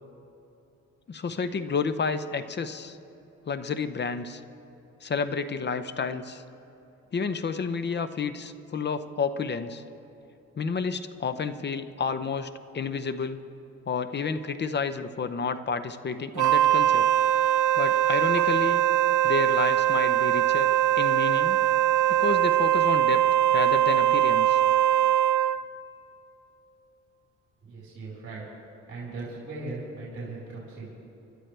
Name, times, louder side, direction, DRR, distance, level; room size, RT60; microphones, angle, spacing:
voice 1, 1.1-3.0 3.5-4.4 5.0-6.4 7.1-9.8 10.6-13.4 13.9-17.1 17.8-18.8 19.2-20.7 21.0-21.6 22.1-23.2 23.5-24.6, left 5 dB, 35° left, 11 dB, 0.8 m, -30 dB
Wind instrument woodwind instrument, 16.3-25.6, right 12 dB, 75° right, 0.6 m, -22 dB
voice 2, 27.6-28.4 28.9-30.9, right 3 dB, 45° right, -7 dB, 4.4 m, -38 dB
28.5 x 12.0 x 3.4 m, 3.0 s
cardioid pair, 90°, 30 cm